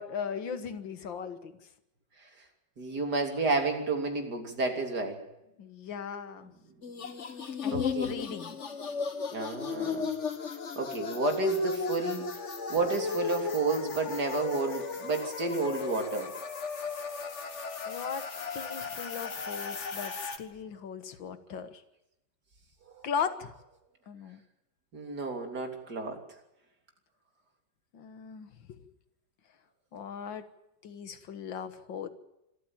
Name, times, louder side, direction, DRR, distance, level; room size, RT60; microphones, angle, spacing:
voice 1, 0.0-1.5 5.6-6.5 7.6-8.6 17.9-18.3 18.5-21.8 23.0-23.5 24.1-24.4 27.9-28.8 29.9-30.5 30.8-32.1, left 7 dB, 85° left, 11 dB, 2.1 m, -38 dB
voice 2, 2.8-5.2 7.7-8.1 9.3-10.1 10.8-12.3 12.7-16.3 24.9-26.2, right 3 dB, 60° right, 3 dB, 3.7 m, -31 dB
sound 1, 6.8-20.4, left 5 dB, 40° left, 1.7 m, -35 dB
25.5 x 14.0 x 9.0 m, 0.87 s
omnidirectional pair, 2.0 m